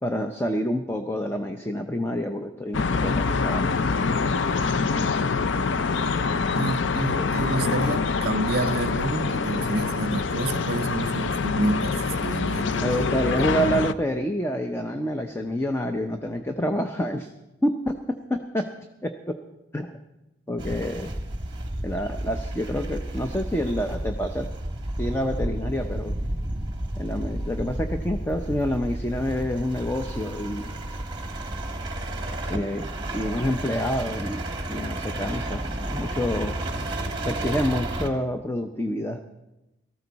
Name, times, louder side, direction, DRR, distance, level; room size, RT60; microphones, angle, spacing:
voice 1, 0.0-4.3 7.1-7.3 12.8-17.3 17.6-18.7 19.0-19.4 19.7-19.9 20.5-21.1 21.8-24.5 25.0-26.2 27.0-30.7 32.5-36.6 37.2-39.2, equal, 15° left, 0.6 m, -28 dB
sound 1, 2.7-13.9, left 4 dB, 75° left, 0.5 m, -25 dB
voice 2, 6.5-13.1, right 2 dB, 55° right, 0.7 m, -29 dB
sound 2, 20.6-38.1, right 1 dB, 25° right, 1.4 m, -32 dB
18.5 x 14.0 x 4.1 m
head